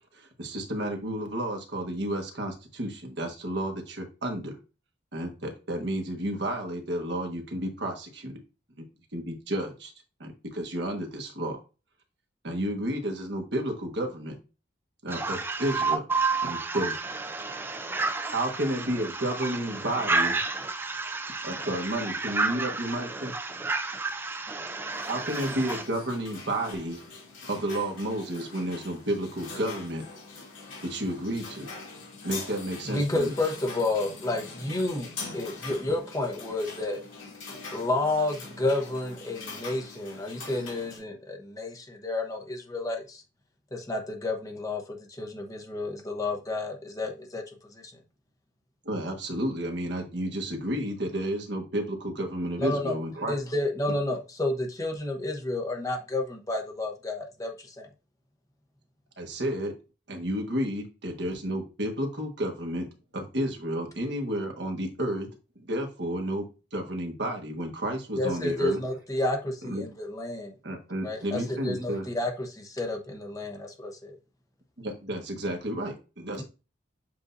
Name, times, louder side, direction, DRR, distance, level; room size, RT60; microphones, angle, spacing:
voice 1, 0.1-4.5 5.1-8.4 9.1-9.9 10.2-11.6 12.4-14.4 15.0-16.0 16.4-16.9 18.3-20.3 21.4-23.3 25.1-27.0 27.5-30.0 30.9-31.7 32.2-33.3 48.8-53.3 59.2-59.7 60.1-62.9 63.1-65.3 65.6-66.4 66.7-68.8 69.6-69.8 70.6-72.1 74.8-76.4, right 1 dB, 65° right, 1.3 m, -31 dB
voice 2, 15.1-25.8, right 3 dB, 10° right, 0.4 m, -31 dB
sound 1, 24.9-41.0, left 4 dB, 85° left, 2.6 m, -43 dB
voice 3, 32.9-37.0 37.7-43.2 43.7-47.4 47.7-47.9 52.6-52.9 53.3-57.9 68.2-70.5 71.0-74.1, left 2 dB, 15° left, 0.9 m, -30 dB
7.5 x 2.6 x 2.6 m
head